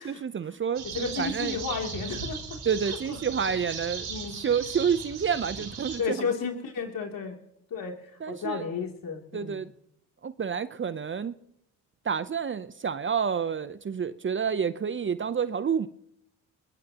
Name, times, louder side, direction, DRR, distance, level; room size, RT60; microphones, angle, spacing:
voice 1, 0.0-1.6 2.6-6.2 8.2-8.7 9.3-9.7 10.2-11.4 12.0-15.9, right 7 dB, 30° right, 0.7 m, -29 dB
sound 1, 0.8-6.0, right 6 dB, 75° right, 5.5 m, -37 dB
voice 2, 0.9-2.6 3.1-3.2 4.0-4.4 6.0-7.4 7.7-9.6, left 5 dB, 60° left, 3.0 m, -33 dB
21.5 x 21.0 x 2.9 m
supercardioid pair, 70°, 39 cm